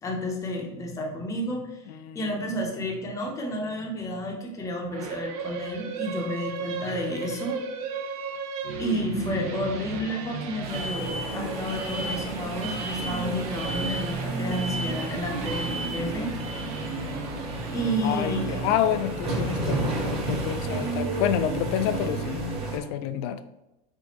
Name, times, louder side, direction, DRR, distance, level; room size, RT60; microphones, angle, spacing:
voice 1, 0.0-1.8 2.1-7.6 8.8-16.3 17.7-18.5, equal, 15° left, 0 dB, 0.7 m, -31 dB
voice 2, 1.9-2.3 2.6-2.9 18.0-23.4, left 10 dB, 55° left, 11 dB, 0.4 m, -29 dB
sound 1, 4.9-18.5, right 4 dB, 70° right, 0.7 m, -36 dB
sound 2, 10.6-22.8, right 2 dB, 30° right, 1.2 m, -31 dB
4.2 x 3.8 x 2.9 m, 0.95 s
supercardioid pair, 150°, 19 cm